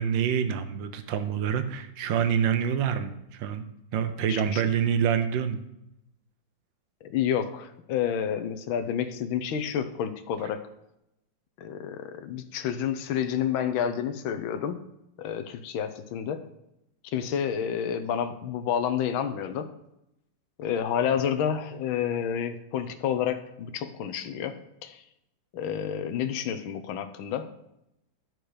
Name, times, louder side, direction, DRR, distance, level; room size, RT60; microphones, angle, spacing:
voice 1, 0.0-3.6 3.9-5.6, right 8 dB, 70° right, 9 dB, 1.5 m, -26 dB
voice 2, 4.3-4.6 7.0-10.7 11.6-14.8 15.2-16.4 17.1-19.7 20.6-25.0 25.5-27.5, left 8 dB, 85° left, 8 dB, 1.6 m, -29 dB
11.0 x 6.2 x 5.0 m, 0.83 s
omnidirectional pair, 2.1 m